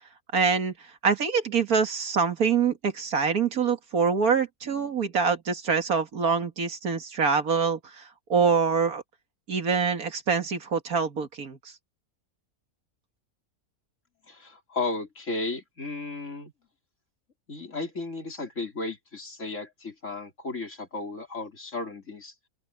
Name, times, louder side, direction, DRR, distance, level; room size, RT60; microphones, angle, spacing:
voice 1, 0.3-9.0 9.5-11.7, right 5 dB, 70° right, 2.2 m, -25 dB
voice 2, 14.3-16.5 17.5-22.3, left 3 dB, 55° left, 4.1 m, -34 dB
open air
omnidirectional pair, 1.6 m